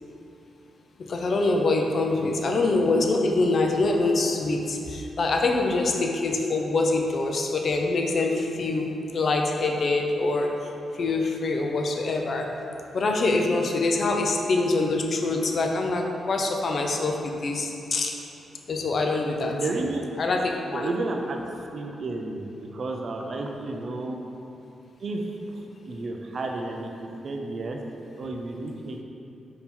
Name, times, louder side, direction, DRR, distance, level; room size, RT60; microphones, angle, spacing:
voice 1, 1.0-12.5 12.9-18.2 18.7-19.6 20.2-20.9, left 3 dB, 45° left, 2 dB, 0.4 m, -25 dB
voice 2, 19.5-20.1 20.7-21.4 21.7-24.2 25.0-25.3 25.5-26.9 27.2-27.8 28.2-29.0, right 2 dB, 50° right, 2 dB, 0.3 m, -32 dB
4.3 x 2.7 x 3.6 m, 2.8 s
cardioid pair, 125°, 0 cm